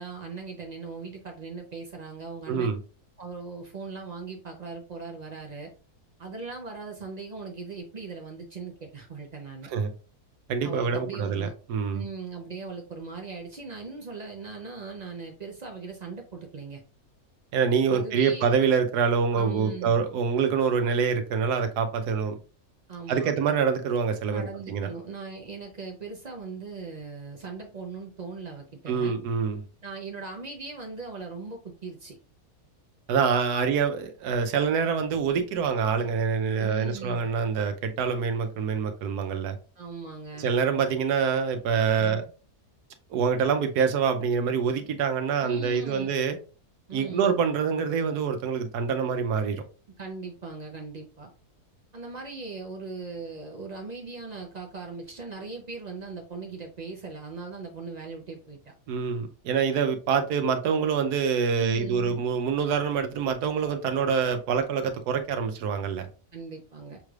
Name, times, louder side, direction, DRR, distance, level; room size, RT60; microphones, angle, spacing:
voice 1, 0.0-2.7 3.2-5.7 6.2-9.7 10.6-11.5 11.9-16.8 17.9-18.5 19.3-20.0 22.9-23.3 24.3-29.2 29.8-32.2 36.6-37.3 39.8-40.5 42.0-42.3 45.4-46.1 46.9-47.3 50.0-51.3 51.9-58.7 61.5-62.2 66.3-67.0, right 4 dB, 60° right, 0.4 m, -39 dB
voice 2, 2.5-2.8 9.7-9.9 10.5-12.0 17.5-22.4 23.1-24.9 28.9-29.6 33.1-39.6 40.4-42.2 43.1-46.4 46.9-49.6 58.9-66.1, right 6 dB, 85° right, 1.2 m, -26 dB
6.4 x 3.2 x 2.3 m
omnidirectional pair, 1.6 m